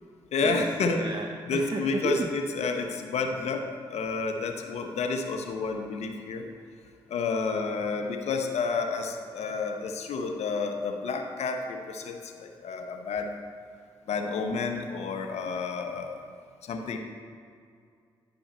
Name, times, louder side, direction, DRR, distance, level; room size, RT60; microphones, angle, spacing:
voice 1, 0.3-1.0 1.4-3.6 3.9-6.5 7.1-13.3 14.1-16.2 16.6-17.0, left 4 dB, 70° left, 4 dB, 0.9 m, -30 dB
voice 2, 0.9-2.3, right 4 dB, 40° right, 2 dB, 0.7 m, -32 dB
10.5 x 5.4 x 4.3 m, 2.2 s
supercardioid pair, 45°, 12 cm